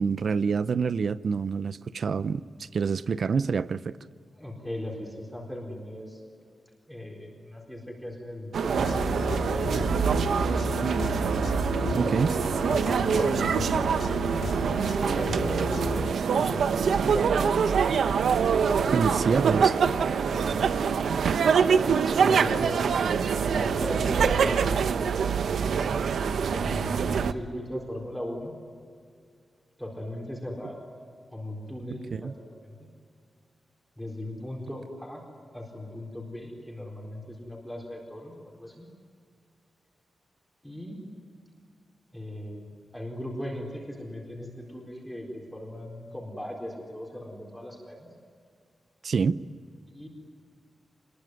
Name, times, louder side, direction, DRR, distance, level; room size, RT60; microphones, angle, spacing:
voice 1, 0.0-4.0 12.0-12.3 18.9-19.7 32.1-32.3 49.0-49.4, right 5 dB, 50° right, 15 dB, 0.6 m, -27 dB
voice 2, 4.3-6.2 6.9-10.8 11.7-13.5 14.9-17.3 18.9-19.7 20.2-20.7 22.0-22.9 23.5-25.2 26.5-28.5 29.8-30.8 31.3-32.3 32.6-32.9 34.0-35.2 35.5-38.9 40.6-41.0 42.1-42.7 42.9-48.1 49.9-50.1, left 1 dB, ahead, -1 dB, 4.3 m, -38 dB
sound 1, 8.5-27.3, right 6 dB, 85° right, 0.9 m, -25 dB
sound 2, 8.7-16.1, left 5 dB, 75° left, 2.6 m, -34 dB
26.5 x 21.0 x 9.6 m, 2.2 s
wide cardioid pair, 180°, 0 cm